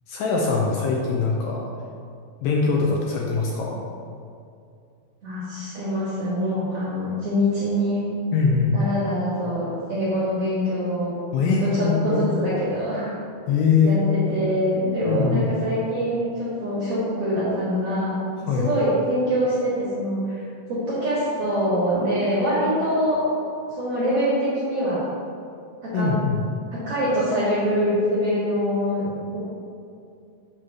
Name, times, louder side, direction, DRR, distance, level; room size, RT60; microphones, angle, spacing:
voice 1, 0.1-1.7 2.4-3.8 8.3-8.8 11.3-12.3 13.5-14.0 15.0-15.5 18.5-18.7 25.9-26.4, left 5 dB, 80° left, -1 dB, 2.1 m, -22 dB
voice 2, 5.2-8.0 8.7-13.1 13.8-18.2 18.5-20.4 20.7-23.2 23.8-25.0 25.8-26.1 26.7-29.1 29.3-29.4, equal, 55° right, -9 dB, 1.8 m, -24 dB
7.4 x 3.2 x 5.6 m, 2.4 s
omnidirectional pair, 4.4 m